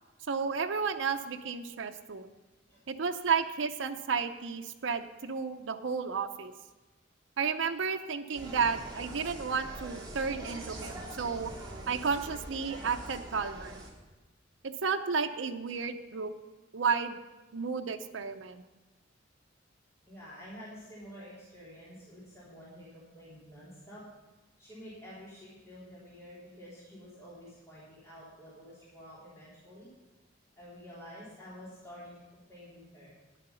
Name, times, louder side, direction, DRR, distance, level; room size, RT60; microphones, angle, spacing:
voice 1, 0.3-2.3 2.9-6.5 7.4-11.5 11.9-13.8 14.6-16.3 16.7-17.2 17.5-18.6, right 5 dB, 75° right, 6 dB, 0.6 m, -32 dB
Insect, 8.3-13.9, right 1 dB, 25° right, 2.7 m, -43 dB
voice 2, 20.1-24.0 24.6-29.9 30.6-32.2 32.5-33.1, equal, 15° left, -10 dB, 3.6 m, -49 dB
10.5 x 9.3 x 5.6 m, 1.2 s
head